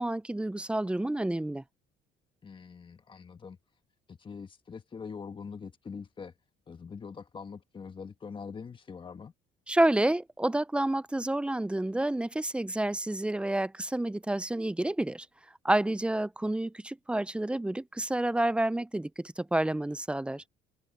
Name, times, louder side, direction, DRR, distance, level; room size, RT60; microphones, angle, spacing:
voice 1, 0.0-1.6 9.7-15.3 15.6-20.4, right 1 dB, 5° right, 0.6 m, -29 dB
voice 2, 2.4-3.6 4.1-6.3 6.7-9.3, left 5 dB, 30° left, 1.5 m, -43 dB
cardioid pair, 110°, 17 cm